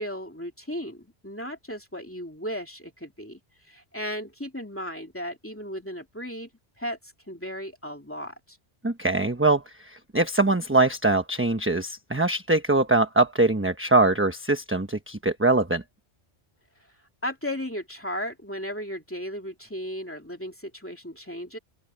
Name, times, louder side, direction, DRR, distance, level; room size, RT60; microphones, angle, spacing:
voice 1, 0.0-3.4 3.7-6.5 6.8-8.6 17.2-21.6, equal, 10° left, 2.7 m, -35 dB
voice 2, 8.8-15.8, right 2 dB, 10° right, 1.0 m, -23 dB
open air
omnidirectional pair, 1.1 m